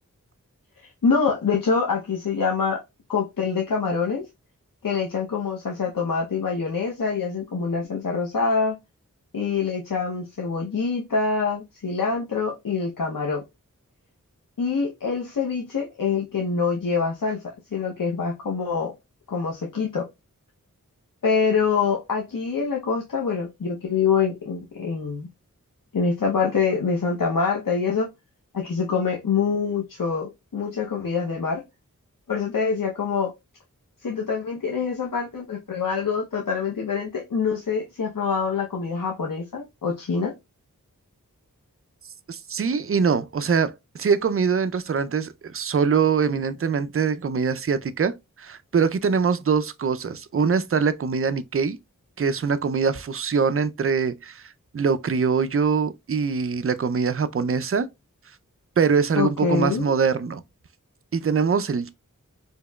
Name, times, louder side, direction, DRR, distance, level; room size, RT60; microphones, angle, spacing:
voice 1, 0.8-2.8 3.1-4.2 4.8-8.8 9.3-13.4 14.6-17.4 17.7-18.9 19.3-20.0 21.2-25.3 25.9-28.1 28.5-31.6 32.3-33.3 34.0-40.3 59.2-59.9, left 5 dB, 80° left, 0.8 m, -25 dB
voice 2, 42.3-51.8 52.2-57.9 58.8-60.4 61.1-62.0, right 5 dB, 40° right, 0.4 m, -23 dB
4.5 x 2.9 x 2.2 m
wide cardioid pair, 45°, 33 cm